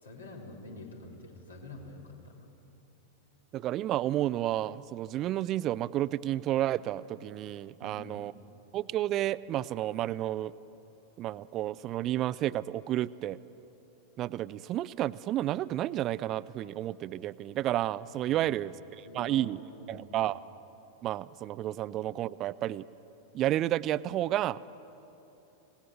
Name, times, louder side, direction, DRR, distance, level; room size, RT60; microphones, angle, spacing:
voice 1, 0.0-2.5 7.8-8.2 18.3-18.5 19.0-20.2, left 2 dB, 75° left, 0 dB, 4.0 m, -47 dB
voice 2, 3.5-8.3 8.7-10.5 11.2-13.4 14.2-19.6 19.9-20.4 21.0-22.9 23.3-24.6, right 13 dB, 35° right, 18 dB, 0.5 m, -31 dB
26.0 x 18.5 x 7.8 m, 3.0 s
figure-of-eight pair, 90°, 0 cm